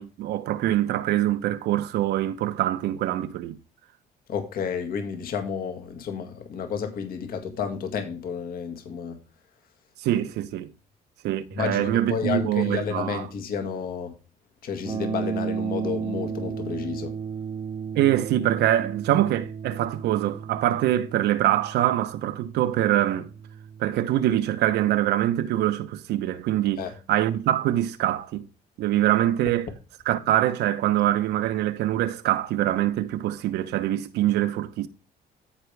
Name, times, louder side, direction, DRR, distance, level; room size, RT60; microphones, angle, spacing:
voice 1, 0.0-3.6 10.0-10.7 11.2-13.3 17.9-23.3 23.8-28.4 28.8-29.7 30.1-34.9, right 13 dB, 80° right, 1.0 m, -24 dB
voice 2, 4.3-9.2 11.5-14.1 14.6-17.2 26.8-26.9, left 6 dB, 60° left, 1.9 m, -31 dB
sound 1, 14.8-24.9, right 7 dB, 30° right, 0.5 m, -34 dB
14.0 x 5.2 x 3.4 m
cardioid pair, 110°, 17 cm